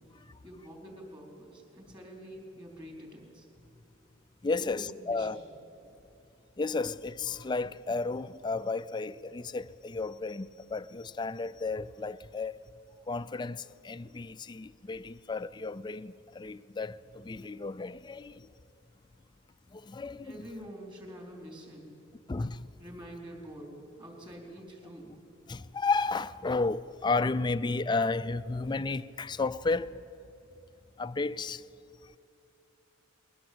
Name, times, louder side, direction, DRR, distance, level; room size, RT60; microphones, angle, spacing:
voice 1, 0.4-3.5 4.6-5.3 20.2-21.9 22.8-25.1, equal, 25° right, 4.3 m, -46 dB
voice 2, 4.4-5.4 6.6-12.6 13.1-18.5 19.7-20.4 22.3-22.7 25.5-29.9 31.0-31.6, left 3 dB, 20° left, 0.4 m, -33 dB
21.5 x 18.5 x 7.9 m
head